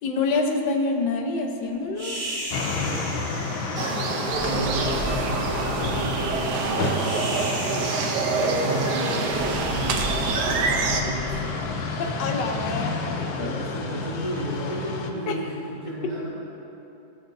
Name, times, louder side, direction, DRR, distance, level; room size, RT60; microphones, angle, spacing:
voice 1, 0.0-2.2 4.4-4.7 12.0-13.6 15.3-15.4, left 3 dB, 70° left, 3 dB, 1.5 m, -27 dB
sound 1, 2.0-12.3, equal, 35° right, 1.9 m, -35 dB
sound 2, 2.5-15.1, left 4 dB, 90° left, 1.6 m, -30 dB
sound 3, 3.8-11.0, right 4 dB, 65° right, 1.2 m, -26 dB
voice 2, 4.5-7.1 8.3-11.9 13.4-16.3, right 2 dB, 90° right, -11 dB, 2.6 m, -34 dB
18.0 x 6.4 x 2.6 m, 2.9 s
omnidirectional pair, 2.1 m